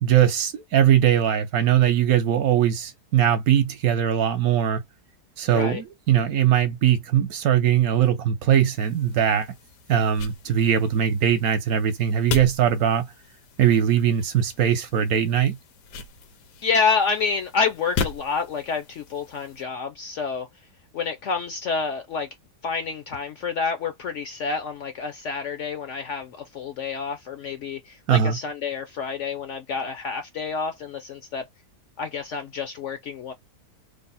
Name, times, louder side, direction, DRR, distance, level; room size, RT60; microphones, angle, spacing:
voice 1, 0.0-4.8 5.4-9.5 9.9-13.1 13.6-15.6 28.1-28.4, right 9 dB, 65° right, 1.1 m, -20 dB
sound 1, 8.7-19.6, left 5 dB, 80° left, 1.3 m, -37 dB
voice 2, 16.6-20.5 20.9-22.3 22.6-31.5 32.0-33.3, left 5 dB, 65° left, 0.8 m, -28 dB
3.4 x 2.0 x 4.0 m
omnidirectional pair, 1.7 m